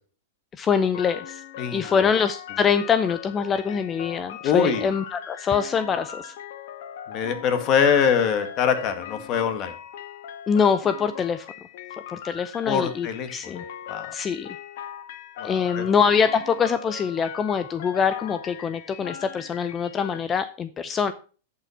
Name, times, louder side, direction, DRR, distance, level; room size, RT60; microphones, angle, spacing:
voice 1, 0.6-1.4 1.7-6.3 10.5-11.5 12.1-13.6 14.1-14.6 15.4-21.1, left 6 dB, 20° left, 13 dB, 0.5 m, -24 dB
sound 1, 0.9-20.2, left 9 dB, 65° left, 1.3 m, -39 dB
voice 2, 1.6-2.1 4.4-4.9 7.1-9.7 12.7-13.5 13.9-14.1 15.4-15.9, left 7 dB, 40° left, 8 dB, 1.8 m, -24 dB
10.5 x 5.9 x 5.6 m, 0.38 s
hypercardioid pair, 135°, 0 cm